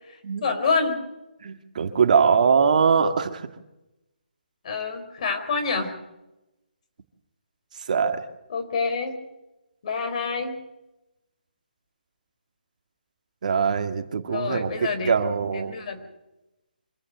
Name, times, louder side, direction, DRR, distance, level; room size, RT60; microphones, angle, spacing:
voice 1, 0.4-1.0 4.6-5.9 8.5-9.2 9.8-10.5 14.3-15.1 15.5-16.0, left 4 dB, 45° left, 7 dB, 4.7 m, -27 dB
voice 2, 1.4-3.5 7.9-8.2 13.4-15.7, right 6 dB, 50° right, 6 dB, 2.0 m, -22 dB
26.0 x 15.0 x 8.0 m, 0.95 s
hypercardioid pair, 155°, 5 cm